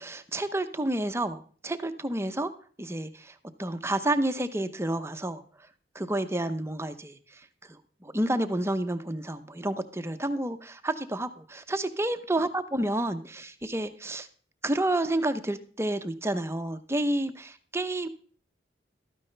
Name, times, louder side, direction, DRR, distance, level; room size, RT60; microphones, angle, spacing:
voice 1, 0.0-2.5 2.8-5.4 5.9-7.4 7.7-14.3 14.6-18.1, right 1 dB, 15° right, 9 dB, 0.8 m, -30 dB
12.5 x 9.6 x 3.3 m, 0.43 s
head